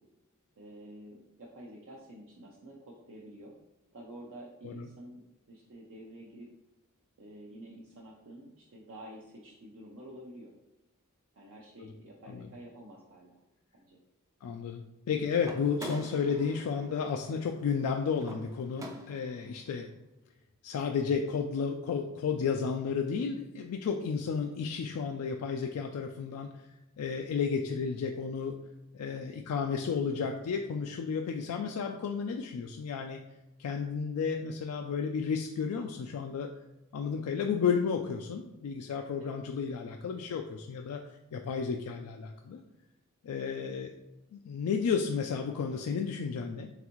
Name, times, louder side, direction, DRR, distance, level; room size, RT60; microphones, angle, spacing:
voice 1, 0.6-3.5 3.9-6.5 7.2-10.5 11.3-13.4 13.7-14.0 29.0-29.3 39.2-39.4 43.4-43.6, right 1 dB, 60° right, -3 dB, 0.6 m, -49 dB
voice 2, 14.4-19.9 20.6-26.5 27.0-28.6 28.9-33.2 33.6-36.5 36.9-41.0 41.3-42.6 43.2-43.9 44.3-46.7, left 6 dB, 80° left, 3 dB, 0.3 m, -32 dB
sound 1, 15.4-19.5, right 1 dB, 15° right, 0.4 m, -46 dB
3.9 x 3.4 x 3.0 m, 1.0 s
head